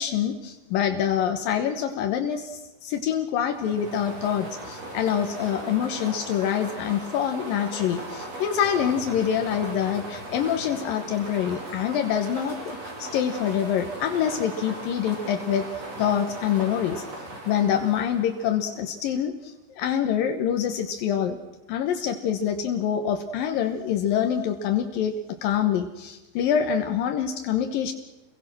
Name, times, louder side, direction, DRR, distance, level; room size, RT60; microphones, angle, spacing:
voice 1, 0.0-15.7 16.0-17.0 17.5-21.4 21.7-25.2 25.4-27.9, left 9 dB, 75° left, 6 dB, 2.1 m, -26 dB
sound 1, 3.4-18.8, right 1 dB, 30° right, 5.4 m, -38 dB
28.5 x 22.0 x 6.2 m, 1.1 s
omnidirectional pair, 5.8 m